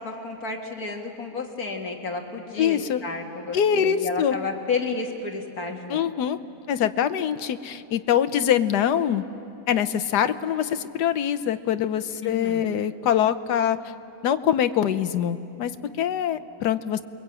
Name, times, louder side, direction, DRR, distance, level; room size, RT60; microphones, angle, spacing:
voice 1, 0.0-6.1 12.2-12.7, left 4 dB, 60° left, 3 dB, 2.3 m, -31 dB
voice 2, 2.6-3.0 3.5-4.3 5.9-6.4 6.7-9.2 9.7-13.8 14.2-17.0, left 9 dB, 85° left, 11 dB, 1.4 m, -24 dB
29.5 x 22.5 x 8.9 m, 2.7 s
omnidirectional pair, 1.7 m